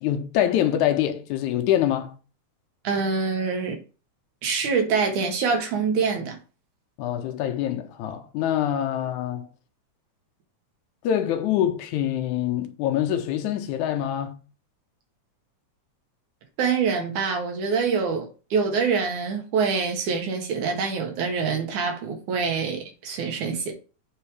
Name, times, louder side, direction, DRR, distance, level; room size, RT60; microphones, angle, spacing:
voice 1, 0.0-2.1 7.0-9.5 11.0-14.4, left 11 dB, 80° left, 2.2 m, -25 dB
voice 2, 2.8-3.8 4.4-6.4 16.6-23.7, right 5 dB, 80° right, 3.1 m, -25 dB
7.9 x 3.8 x 4.8 m
omnidirectional pair, 3.5 m